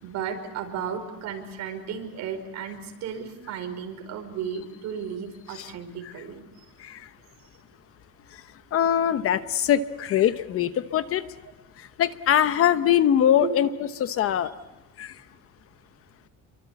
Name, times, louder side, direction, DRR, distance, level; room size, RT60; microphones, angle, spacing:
voice 1, 0.0-6.4 13.4-13.5, right 7 dB, 60° right, 5 dB, 5.1 m, -34 dB
voice 2, 8.7-11.3 11.8-13.7 14.0-14.5 15.0-15.1, left 10 dB, 45° left, 12 dB, 1.0 m, -22 dB
28.5 x 24.0 x 8.4 m, 1.1 s
cardioid pair, 165°, 32 cm